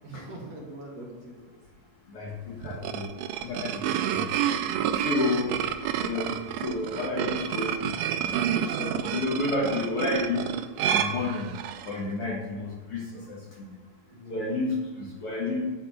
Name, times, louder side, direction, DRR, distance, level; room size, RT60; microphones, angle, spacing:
voice 1, 0.0-1.5 14.1-14.7, right 2 dB, 55° right, -3 dB, 2.7 m, -42 dB
voice 2, 2.1-3.1 3.4-4.3 4.9-5.6 6.0-7.9 8.2-10.5 10.9-11.5 11.8-13.8 14.3-15.8, left 2 dB, 55° left, -2 dB, 1.8 m, -31 dB
sound 1, 2.6-11.9, right 9 dB, 80° right, 1.6 m, -29 dB
10.0 x 3.8 x 6.9 m, 1.3 s
omnidirectional pair, 3.5 m